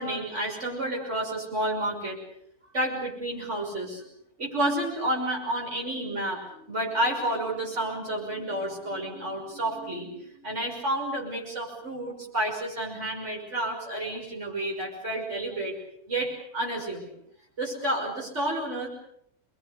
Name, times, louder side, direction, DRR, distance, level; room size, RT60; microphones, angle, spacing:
voice 1, 0.0-2.2 2.7-4.0 4.4-15.8 16.1-17.1 17.6-18.9, right 1 dB, 50° right, -1 dB, 6.5 m, -30 dB
28.0 x 22.0 x 6.9 m, 0.70 s
omnidirectional pair, 1.5 m